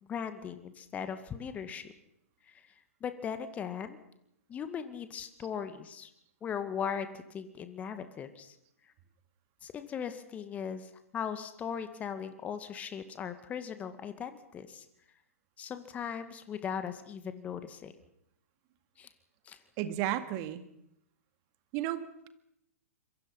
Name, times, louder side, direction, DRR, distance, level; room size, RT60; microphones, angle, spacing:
voice 1, 0.0-1.9 2.5-2.6 3.0-4.0 4.5-6.1 6.4-8.5 9.6-14.9 15.6-17.9 19.0-19.1 19.5-19.6, left 7 dB, 20° left, 10 dB, 1.9 m, -38 dB
voice 2, 19.8-20.6 21.7-22.3, right 12 dB, 35° right, 10 dB, 2.0 m, -33 dB
26.5 x 23.0 x 5.7 m, 0.78 s
figure-of-eight pair, 110°, 8 cm